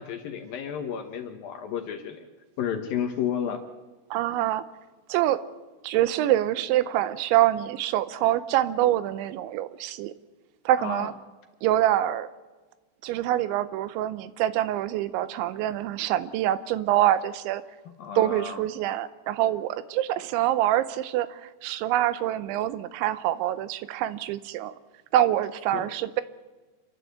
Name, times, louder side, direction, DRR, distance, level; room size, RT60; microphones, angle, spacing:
voice 1, 0.0-2.2 2.6-3.6 10.8-11.1 18.0-18.7 25.7-25.9, left 8 dB, 70° left, 6 dB, 2.4 m, -32 dB
voice 2, 4.1-4.6 5.1-5.4 5.8-10.1 10.7-11.1 11.6-12.3 13.0-17.6 18.2-21.3 21.6-24.7 25.1-26.2, right 13 dB, 85° right, 14 dB, 3.2 m, -25 dB
27.5 x 12.0 x 8.1 m, 1.2 s
omnidirectional pair, 5.2 m